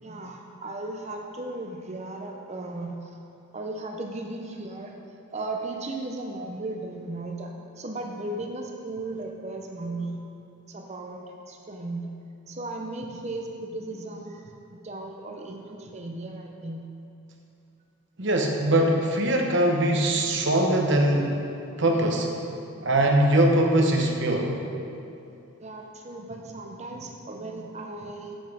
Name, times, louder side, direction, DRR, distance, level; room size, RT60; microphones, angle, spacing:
voice 1, 0.0-3.2 3.5-4.9 5.3-10.2 10.7-12.1 12.5-16.9 25.2-28.4, right 2 dB, 30° right, 2 dB, 0.6 m, -36 dB
voice 2, 18.2-21.3 21.8-22.3 22.8-24.5, right 1 dB, 55° right, 1 dB, 0.9 m, -22 dB
7.1 x 5.5 x 6.1 m, 2.6 s
head